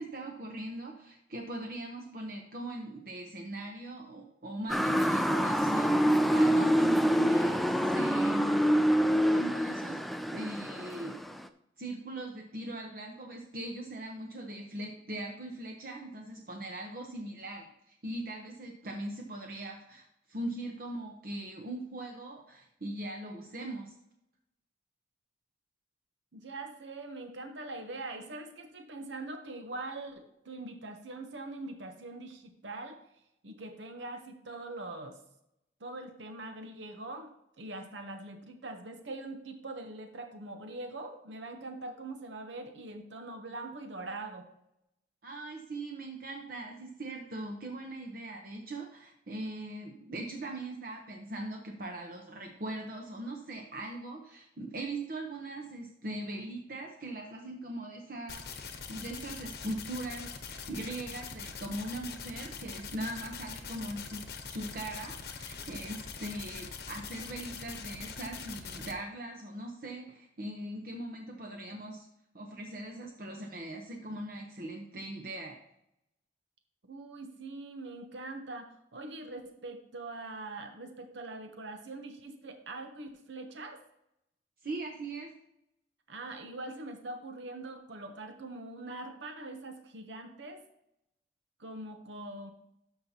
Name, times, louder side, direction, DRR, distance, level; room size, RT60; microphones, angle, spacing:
voice 1, 0.0-8.7 9.3-10.0 10.3-11.2 11.8-23.9 45.2-72.1 72.3-75.6 84.6-85.3, right 1 dB, 55° right, 1 dB, 0.9 m, -40 dB
Motor vehicle (road) / Siren, 4.7-11.5, equal, ahead, 0.3 m, -26 dB
voice 2, 26.3-33.0 33.4-35.2 35.8-37.3 37.6-44.5 76.9-83.8 86.1-90.6 91.6-92.5, right 2 dB, 90° right, 5 dB, 0.9 m, -43 dB
sound 1, 58.3-68.9, left 5 dB, 60° left, 0.9 m, -43 dB
12.5 x 5.7 x 2.8 m, 0.80 s
head